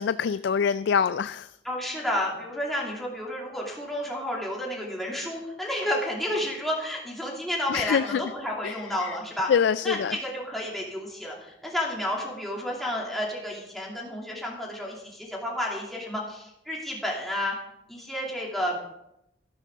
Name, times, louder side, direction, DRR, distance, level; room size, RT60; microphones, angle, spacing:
voice 1, 0.0-1.5 7.7-8.2 8.6-9.2 9.5-10.2, left 7 dB, 70° left, 14 dB, 0.3 m, -25 dB
voice 2, 1.6-9.5 9.8-17.6 17.9-18.8, left 1 dB, ahead, -4 dB, 2.5 m, -31 dB
12.5 x 12.5 x 3.6 m, 0.81 s
head